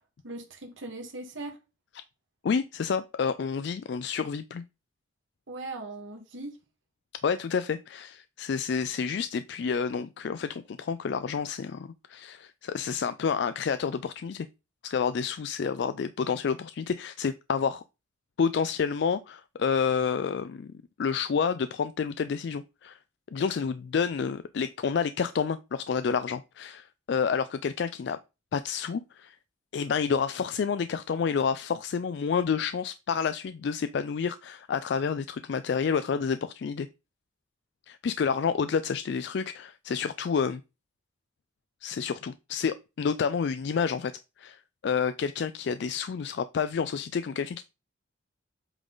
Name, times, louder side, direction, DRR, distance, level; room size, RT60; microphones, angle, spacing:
voice 1, 0.2-1.6 5.5-6.6, right 2 dB, 75° right, 1.7 m, -39 dB
voice 2, 2.4-4.6 7.2-14.5 14.8-17.8 18.4-20.7 21.0-23.0 23.3-28.2 28.5-29.4 29.7-36.9 37.9-40.6 41.8-44.1 44.4-47.6, left 6 dB, 60° left, 0.3 m, -29 dB
7.9 x 3.8 x 3.9 m
head